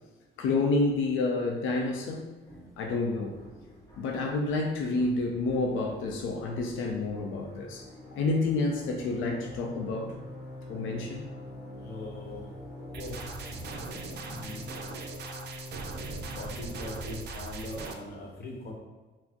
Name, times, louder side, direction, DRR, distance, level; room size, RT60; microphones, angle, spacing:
voice 1, 0.4-2.2 2.8-3.4 4.0-10.1 10.7-11.2, left 3 dB, 80° left, 1 dB, 0.4 m, -29 dB
sound 1, 2.5-16.1, equal, 20° left, 1.2 m, -51 dB
sound 2, 7.8-17.2, left 2 dB, 5° right, 1.4 m, -44 dB
voice 2, 11.8-12.4 12.9-13.2 14.3-14.6 16.2-18.7, left 2 dB, 50° left, 0 dB, 0.9 m, -41 dB
sound 3, 12.9-17.9, right 4 dB, 60° right, 0.4 m, -40 dB
4.0 x 2.0 x 2.8 m, 1.3 s
cardioid pair, 90°, 20 cm